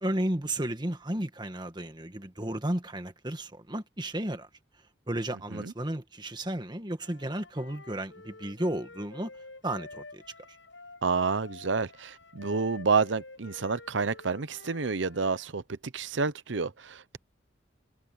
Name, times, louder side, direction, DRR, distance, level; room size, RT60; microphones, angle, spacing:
voice 1, 0.0-4.5 5.1-9.3 9.6-10.2, right 1 dB, 25° right, 1.7 m, -33 dB
Wind instrument woodwind instrument, 7.0-15.5, left 3 dB, 80° left, 7.1 m, -49 dB
voice 2, 11.0-17.2, right 4 dB, 75° right, 0.8 m, -29 dB
head